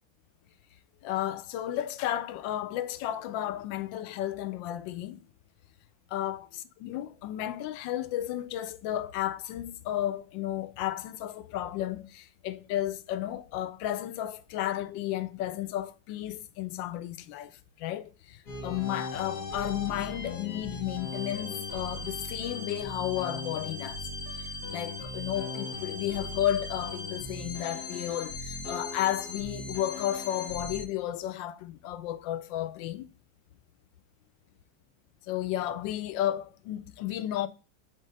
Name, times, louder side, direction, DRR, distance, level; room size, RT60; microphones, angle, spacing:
voice 1, 1.0-5.2 6.1-17.5 17.8-18.4 18.6-24.0 24.7-33.1 35.3-37.5, left 12 dB, 90° left, 1.3 m, -33 dB
sound 1, 18.5-30.8, left 3 dB, 65° left, 1.7 m, -38 dB
6.3 x 3.8 x 3.9 m
omnidirectional pair, 2.0 m